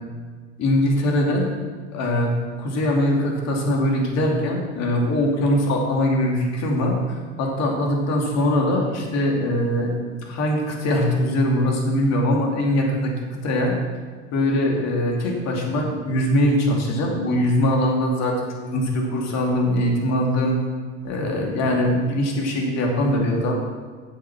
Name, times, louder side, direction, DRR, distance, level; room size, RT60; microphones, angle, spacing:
voice 1, 0.6-1.5 1.9-2.3 2.6-13.7 14.3-20.6 21.0-23.5, left 1 dB, 45° left, 0 dB, 2.7 m, -22 dB
9.3 x 7.7 x 5.9 m, 1.5 s
hypercardioid pair, 85°, 37 cm